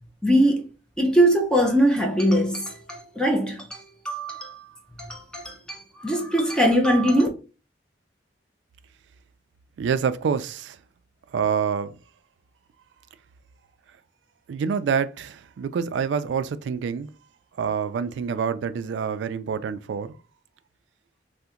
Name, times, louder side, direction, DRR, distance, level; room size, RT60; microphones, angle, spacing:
voice 1, 0.2-0.6 1.0-4.7 5.0-7.3, equal, 5° left, 0.5 m, -22 dB
voice 2, 9.8-10.8 11.3-12.0 14.5-17.1 17.6-20.1, right 6 dB, 75° right, 0.3 m, -26 dB
2.8 x 2.1 x 3.6 m
head